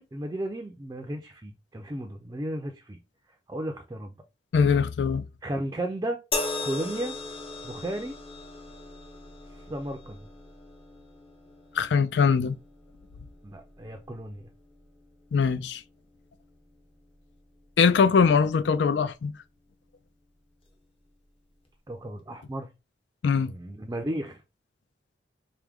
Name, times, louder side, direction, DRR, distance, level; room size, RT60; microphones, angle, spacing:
voice 1, 0.0-3.0 3.5-4.1 5.4-6.2 6.6-7.2 7.6-8.1 9.7-10.2 13.4-14.5 21.9-22.7 23.4-24.4, right 1 dB, 20° right, 0.4 m, -34 dB
voice 2, 4.5-5.2 11.8-12.6 15.3-15.8 17.8-19.3 23.2-23.5, left 5 dB, 80° left, 0.4 m, -22 dB
sound 1, 6.3-19.6 20.6-20.8, left 3 dB, 30° left, 0.7 m, -40 dB
4.6 x 2.1 x 3.5 m
head